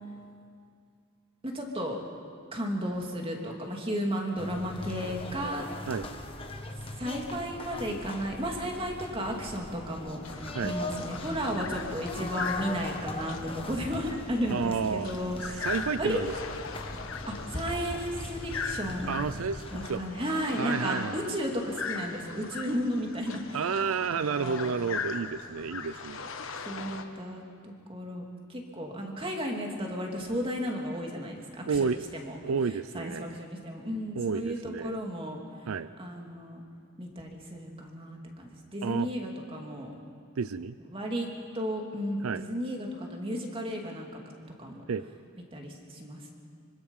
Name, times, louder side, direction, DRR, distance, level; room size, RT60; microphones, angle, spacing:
voice 1, 1.4-2.0 2.5-5.9 6.9-15.7 16.0-16.2 17.3-19.1 19.7-23.7 24.1-24.8 26.6-28.2 28.5-32.4 32.7-35.4 36.0-36.6 37.0-39.9 40.8-41.3 41.5-44.1 44.6-44.8 45.5-46.3, equal, 25° right, 1 dB, 2.6 m, -34 dB
sound 1, 4.4-19.9, left 2 dB, 25° left, 1.3 m, -40 dB
sound 2, 10.2-27.0, left 5 dB, 70° left, 1.3 m, -40 dB
voice 2, 14.5-15.1 15.6-16.3 19.1-20.0 20.6-21.3 23.5-26.3 31.7-32.0 32.4-33.3 34.2-35.0 35.7-35.9 38.8-39.1 40.4-40.8 42.2-42.4 44.9-45.0, right 5 dB, 85° right, 14 dB, 0.5 m, -31 dB
25.0 x 24.5 x 5.5 m, 2.3 s
head